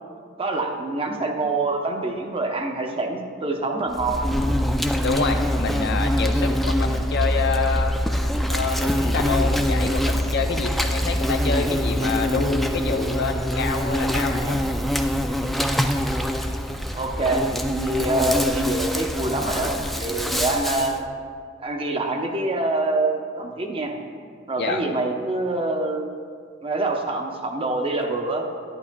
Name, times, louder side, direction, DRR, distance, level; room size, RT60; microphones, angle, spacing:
voice 1, 0.4-4.4 16.9-21.0 21.6-23.9 24.5-26.0 26.6-28.4, right 2 dB, 25° right, 2 dB, 0.7 m, -25 dB
Insect, 3.9-21.0, equal, ahead, 0.3 m, -24 dB
voice 2, 5.0-8.0 8.5-14.6 24.6-24.8, left 4 dB, 55° left, 4 dB, 0.6 m, -27 dB
11.0 x 10.5 x 2.2 m, 2.1 s
head